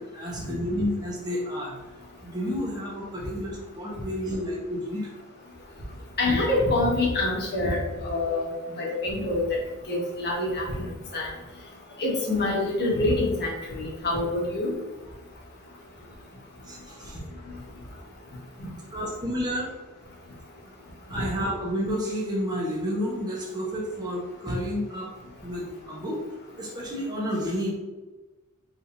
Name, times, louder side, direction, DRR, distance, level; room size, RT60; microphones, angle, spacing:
voice 1, 0.0-1.8 2.2-5.1 16.6-17.2 18.9-19.7 21.1-25.1 25.4-26.2 26.6-27.7, equal, 20° right, -5 dB, 1.1 m, -30 dB
voice 2, 6.2-8.5 8.8-9.4 9.9-11.3 12.0-14.7, left 2 dB, 50° left, -3 dB, 1.4 m, -26 dB
5.4 x 3.6 x 2.7 m, 1.1 s
head